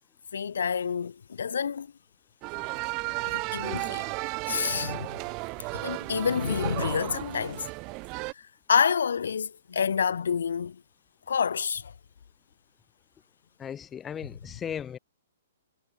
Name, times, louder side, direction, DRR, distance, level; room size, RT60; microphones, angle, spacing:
voice 1, 0.3-1.9 3.2-4.1 4.5-5.2 5.7-7.7 8.4-10.8 11.3-11.9, left 7 dB, 85° left, 0.7 m, -28 dB
sound 1, 2.4-8.3, right 28 dB, 20° right, 0.8 m, -34 dB
voice 2, 13.6-15.0, left 8 dB, 10° left, 0.3 m, -36 dB
hypercardioid pair, 180°, 0 cm